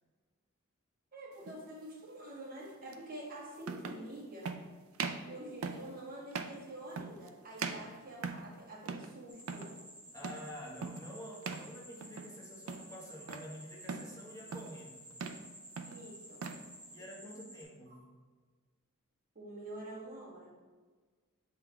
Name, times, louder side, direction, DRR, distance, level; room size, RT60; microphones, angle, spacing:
voice 1, 1.1-4.5 5.3-9.7 15.8-16.5 17.9-18.0 19.3-20.6, right 1 dB, 40° right, -5 dB, 1.7 m, -47 dB
sound 1, 1.4-1.6 2.9-3.0 3.6-4.1 4.4-4.6 4.9-5.3 5.6-5.9 6.3-6.6 7.0-7.3 7.6-8.5 8.9-9.1 9.4-9.7 10.2-10.5 10.8-11.1 11.4-11.7 12.0-12.4 12.7-13.5 13.9-14.1 14.5-14.8 15.1-15.5 15.8-16.6, right 5 dB, 70° right, 0.4 m, -40 dB
sound 2, 9.3-17.6, equal, 5° right, 1.5 m, -53 dB
voice 2, 10.1-15.1 16.9-18.0, equal, 15° left, -3 dB, 1.1 m, -48 dB
7.7 x 3.8 x 3.5 m, 1.4 s
head